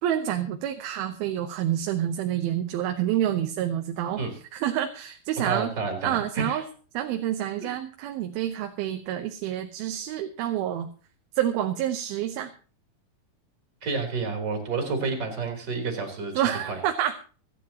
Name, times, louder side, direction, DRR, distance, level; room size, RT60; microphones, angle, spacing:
voice 1, 0.0-4.2 4.5-5.7 6.0-6.6 6.9-10.9 11.4-12.5 16.4-17.1, right 11 dB, 85° right, 6 dB, 2.9 m, -28 dB
voice 2, 5.4-6.6 13.8-16.8, right 4 dB, 30° right, 2 dB, 4.1 m, -30 dB
26.5 x 9.9 x 2.9 m, 0.39 s
omnidirectional pair, 4.2 m